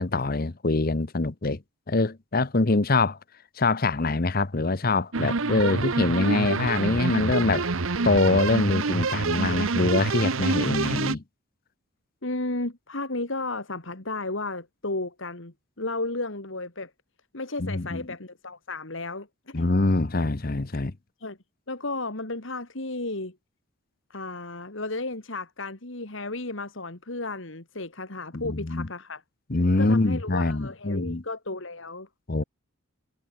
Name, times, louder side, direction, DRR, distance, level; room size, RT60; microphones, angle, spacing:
voice 1, 0.0-1.6 1.9-3.2 3.6-7.7 8.0-11.2 17.6-18.0 19.5-20.9 28.3-28.9 29.5-31.2 32.3-32.4, left 2 dB, 45° left, 0.9 m, -24 dB
sound 1, 5.1-11.1, right 3 dB, 75° right, 1.1 m, -27 dB
voice 2, 12.2-16.9 17.3-19.6 20.7-20.8 21.2-21.4 21.7-23.4 24.1-29.2 29.8-32.1, left 2 dB, 65° left, 2.6 m, -33 dB
head